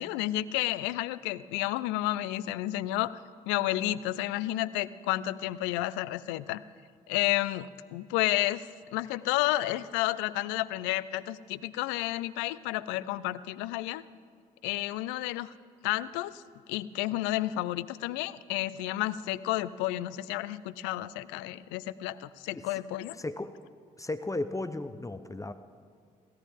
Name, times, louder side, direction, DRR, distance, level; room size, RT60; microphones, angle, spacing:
voice 1, 0.0-3.1 3.5-6.6 7.1-8.7 8.9-14.0 14.6-15.5 15.8-16.4 16.7-23.2, left 16 dB, 75° left, 17 dB, 0.5 m, -31 dB
voice 2, 23.2-23.5 24.0-25.5, left 2 dB, 15° left, 11 dB, 0.9 m, -35 dB
21.5 x 17.0 x 3.7 m, 2.2 s
hypercardioid pair, 45°, 19 cm